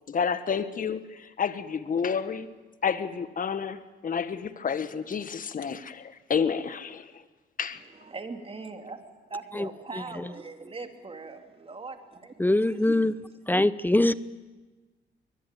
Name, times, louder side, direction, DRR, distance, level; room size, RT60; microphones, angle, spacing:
voice 1, 0.1-2.5 2.8-7.1 7.6-7.8, left 6 dB, 45° left, 12 dB, 1.4 m, -30 dB
voice 2, 7.8-12.3 12.6-13.0, right 3 dB, 30° right, 5 dB, 3.1 m, -41 dB
voice 3, 9.9-10.3 12.4-13.1 13.5-14.1, left 1 dB, 10° left, 16 dB, 0.7 m, -23 dB
22.5 x 21.0 x 9.3 m, 1.3 s
cardioid pair, 90°, 20 cm